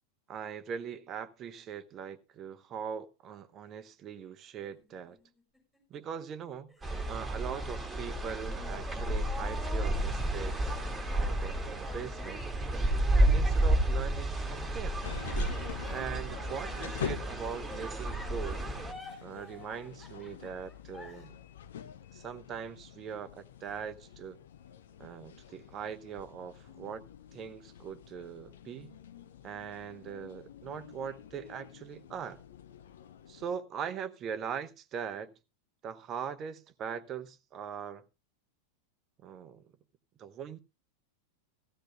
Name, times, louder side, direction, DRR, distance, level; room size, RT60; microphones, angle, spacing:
voice 1, 0.3-5.2 5.9-6.7 7.1-12.5 13.2-15.0 15.9-18.6 19.2-21.4 22.1-24.4 25.0-28.9 29.4-32.4 33.3-35.3 35.8-38.0 39.2-39.6 40.2-40.6, right 7 dB, 30° right, 1.0 m, -41 dB
sound 1, 4.6-6.0 6.7-8.9 9.3-9.4 9.8-11.9 12.2-14.2 15.3-17.8 18.1-21.3, left 2 dB, 10° left, 6.6 m, -54 dB
sound 2, 6.8-18.9, right 1 dB, 10° right, 2.5 m, -31 dB
sound 3, 15.0-33.5, left 9 dB, 60° left, 0.9 m, -46 dB
16.0 x 14.5 x 2.3 m
figure-of-eight pair, 90°, 0 cm